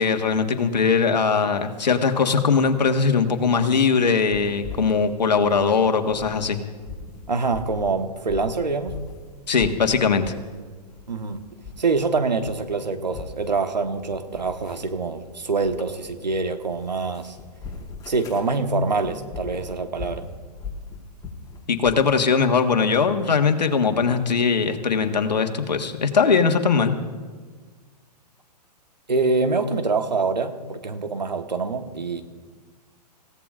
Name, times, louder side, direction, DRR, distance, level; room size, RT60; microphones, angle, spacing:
voice 1, 0.0-6.6 9.5-10.2 21.7-26.9, left 5 dB, 80° left, 5 dB, 1.6 m, -20 dB
sound 1, 4.3-6.5 6.8-9.3 9.6-10.5 10.9-12.0 12.3-22.1, left 4 dB, 15° left, 4.5 m, -40 dB
voice 2, 7.3-9.0 11.1-11.4 11.8-17.4 18.1-20.2 29.1-32.2, right 3 dB, 85° right, 7 dB, 1.4 m, -25 dB
26.0 x 16.5 x 2.5 m, 1.5 s
hypercardioid pair, 120°, 21 cm